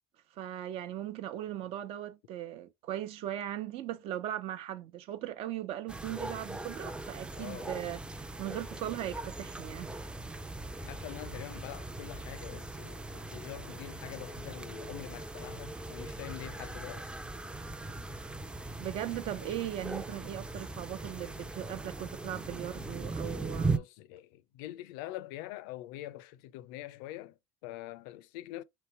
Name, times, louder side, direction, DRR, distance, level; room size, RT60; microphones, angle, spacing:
voice 1, 0.3-8.0 8.4-10.0 18.8-23.8, right 12 dB, 60° right, 0.8 m, -38 dB
sound 1, 5.9-23.8, right 2 dB, 10° right, 0.5 m, -39 dB
voice 2, 7.4-7.8 10.8-17.1 23.7-28.6, left 15 dB, 80° left, 0.5 m, -45 dB
3.3 x 3.1 x 4.3 m
supercardioid pair, 105°, 11 cm